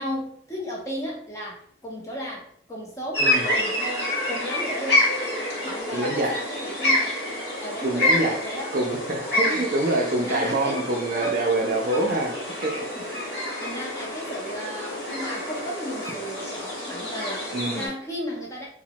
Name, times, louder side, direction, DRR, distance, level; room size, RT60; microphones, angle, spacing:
voice 1, 0.0-5.2 5.6-7.2 7.6-8.7 9.2-9.7 10.1-10.8 12.9-18.7, equal, 15° left, -3 dB, 0.6 m, -35 dB
sound 1, 3.1-17.9, left 1 dB, 60° left, 1.0 m, -28 dB
voice 2, 5.9-6.3 7.8-8.4 8.7-12.3 12.6-13.3 17.5-17.9, right 2 dB, 45° right, 1 dB, 0.4 m, -26 dB
3.0 x 2.1 x 2.9 m, 0.64 s
head